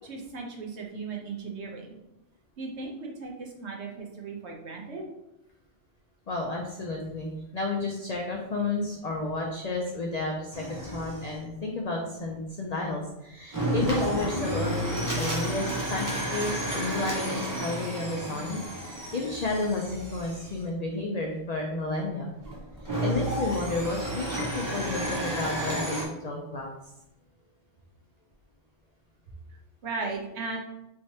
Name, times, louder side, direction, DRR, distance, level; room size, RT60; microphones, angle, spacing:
voice 1, 0.0-2.0 2.6-5.0 29.8-30.6, right 4 dB, 65° right, 0 dB, 1.0 m, -36 dB
voice 2, 6.3-22.3 23.0-26.7, left 2 dB, 75° left, 0 dB, 0.3 m, -32 dB
sound 1, 10.5-11.4 13.5-20.6 22.4-26.1, right 1 dB, 20° right, 0.6 m, -31 dB
3.5 x 3.1 x 2.7 m, 0.90 s
omnidirectional pair, 1.3 m